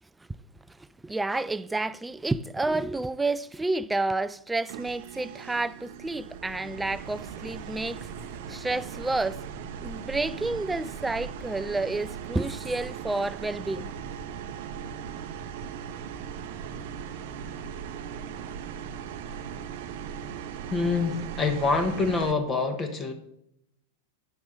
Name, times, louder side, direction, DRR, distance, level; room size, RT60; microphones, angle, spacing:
voice 1, 0.7-9.4 9.8-13.9, right 2 dB, 10° right, 0.3 m, -30 dB
sound 1, 4.7-22.3, right 7 dB, 50° right, 0.7 m, -38 dB
voice 2, 20.7-23.1, left 4 dB, 20° left, 1.2 m, -26 dB
9.9 x 6.0 x 5.2 m
figure-of-eight pair, 90°, 0 cm